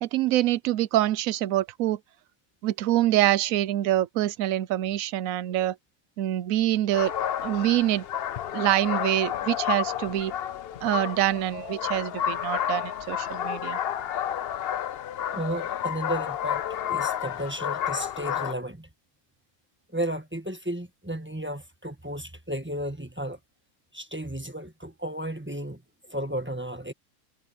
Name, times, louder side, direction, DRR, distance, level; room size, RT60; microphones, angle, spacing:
voice 1, 0.0-2.0 2.6-5.8 6.2-7.1 7.4-8.0 8.5-10.3 10.8-13.8, right 13 dB, 75° right, 1.0 m, -25 dB
sound 1, 6.9-18.5, left 10 dB, 55° left, 0.7 m, -31 dB
voice 2, 15.3-18.9 19.9-23.4 23.9-26.9, right 1 dB, 10° right, 1.4 m, -33 dB
omnidirectional pair, 1.5 m